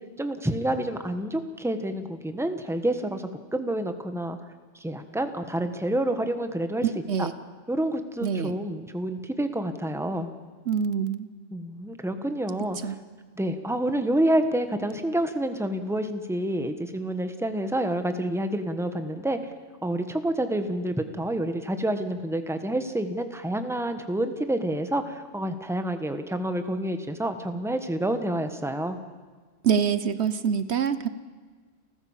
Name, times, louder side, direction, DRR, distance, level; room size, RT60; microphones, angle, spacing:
voice 1, 0.2-4.4 4.8-6.9 7.2-7.3 7.7-10.3 11.5-13.0 13.4-19.5 19.8-29.0, right 1 dB, ahead, 8 dB, 1.3 m, -28 dB
voice 2, 6.8-7.3 8.2-8.6 10.7-11.3 12.8-13.0 29.6-31.1, right 7 dB, 70° right, 13 dB, 1.1 m, -25 dB
29.5 x 14.5 x 7.4 m, 1.5 s
omnidirectional pair, 1.2 m